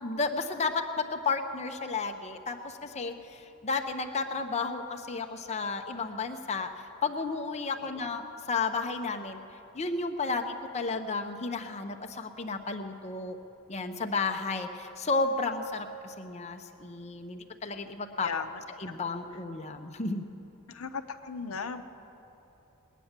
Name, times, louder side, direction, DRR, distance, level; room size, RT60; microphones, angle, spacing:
voice 1, 0.0-6.7 7.0-9.4 9.7-13.4 13.7-18.3 18.8-20.2, left 4 dB, 30° left, 5 dB, 0.7 m, -32 dB
voice 2, 18.1-18.6 20.7-21.8, left 5 dB, 75° left, 8 dB, 0.8 m, -37 dB
19.5 x 9.1 x 7.3 m, 2.9 s
head